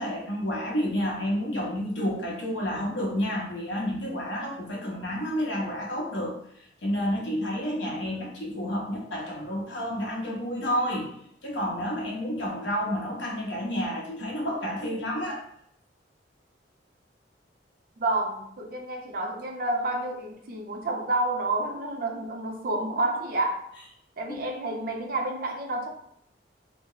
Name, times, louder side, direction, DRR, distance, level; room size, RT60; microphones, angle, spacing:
voice 1, 0.0-6.3 6.8-11.1 11.4-15.4 24.3-24.5, equal, 75° left, -2 dB, 1.0 m, -30 dB
voice 2, 18.0-23.6 24.2-25.9, right 2 dB, 50° right, 2 dB, 0.5 m, -29 dB
3.4 x 2.0 x 3.9 m, 0.71 s
head